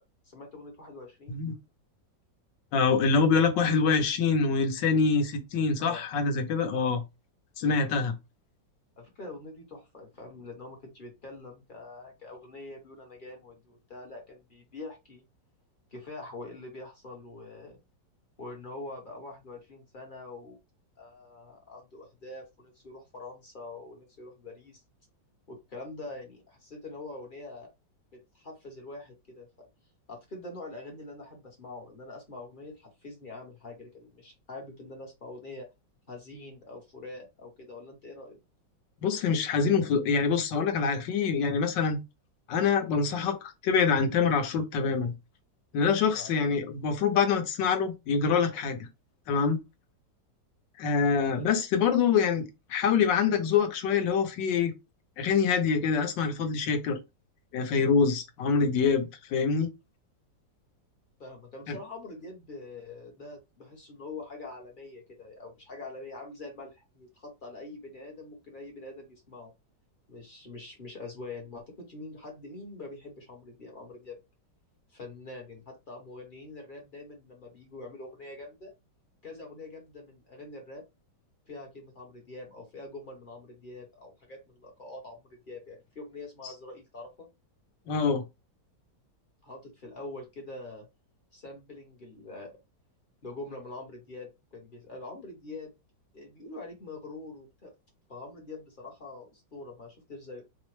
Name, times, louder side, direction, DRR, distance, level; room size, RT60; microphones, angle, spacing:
voice 1, 0.2-1.4 5.8-6.0 6.7-6.9 9.0-15.2 15.9-17.8 18.4-20.6 21.0-24.8 25.5-27.7 28.1-29.5 30.1-35.7 36.1-38.4 46.1-46.3 51.3-51.4 61.2-69.5 70.1-74.2 74.9-78.7 79.2-80.8 81.5-87.3 89.4-90.9 91.3-92.5 93.2-95.7 96.1-97.7 98.1-100.4, left 2 dB, 40° left, 0.8 m, -44 dB
voice 2, 2.7-7.0 7.6-8.1 39.0-42.0 42.5-45.1 45.7-48.9 49.3-49.6 50.8-52.4 52.7-54.7 55.2-57.0 57.5-59.7 61.7-61.8 87.9-88.2, left 5 dB, 75° left, 1.4 m, -25 dB
4.7 x 2.0 x 3.0 m
omnidirectional pair, 2.0 m